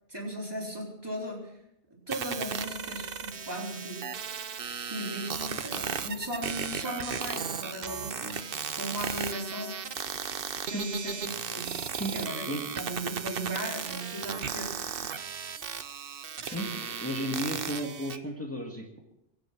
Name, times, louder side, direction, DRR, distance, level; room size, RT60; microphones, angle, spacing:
voice 1, 0.1-1.5 1.9-4.2 4.9-8.4 8.7-9.8 10.7-11.8 12.1-15.1 16.4-16.7, right 1 dB, 20° right, -2 dB, 4.1 m, -37 dB
sound 1, 2.1-18.2, right 6 dB, 60° right, 1.0 m, -36 dB
voice 2, 16.4-19.0, equal, 15° left, -1 dB, 2.0 m, -34 dB
24.5 x 8.6 x 6.1 m, 0.82 s
omnidirectional pair, 1.1 m